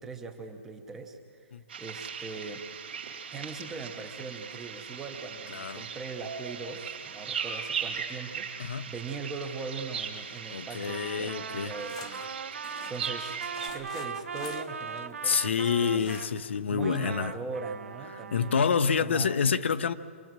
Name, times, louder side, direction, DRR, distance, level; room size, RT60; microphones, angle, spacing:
voice 1, 0.0-2.6 3.3-13.4 13.6-16.1 16.7-18.6 19.0-19.4, right 4 dB, 5° right, 4 dB, 0.8 m, -40 dB
sound 1, 1.7-13.7, right 6 dB, 50° right, 2.4 m, -39 dB
voice 2, 5.5-5.8 8.6-8.9 10.5-11.7 12.2-12.3 15.2-17.3 18.3-19.9, left 6 dB, 60° left, 11 dB, 0.8 m, -27 dB
Trumpet, 10.8-16.3 16.8-18.8, right 6 dB, 80° right, 1.1 m, -40 dB
sound 2, 11.3-15.6 15.9-16.6 17.0-17.1 17.3-17.4, left 8 dB, 25° left, 0.9 m, -48 dB
26.0 x 19.5 x 7.5 m, 2.2 s
hypercardioid pair, 180°, 7 cm